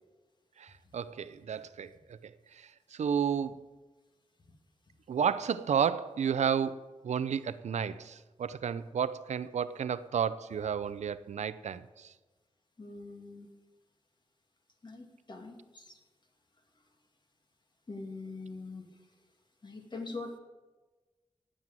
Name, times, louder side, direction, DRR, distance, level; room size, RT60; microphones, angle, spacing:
voice 1, 0.6-3.6 5.1-12.1, right 7 dB, 90° right, 0.6 m, -32 dB
voice 2, 12.8-13.5 14.8-16.0 17.9-18.9 19.6-20.4, left 3 dB, 40° left, 2.4 m, -43 dB
18.5 x 7.7 x 7.6 m
wide cardioid pair, 90°, 11 cm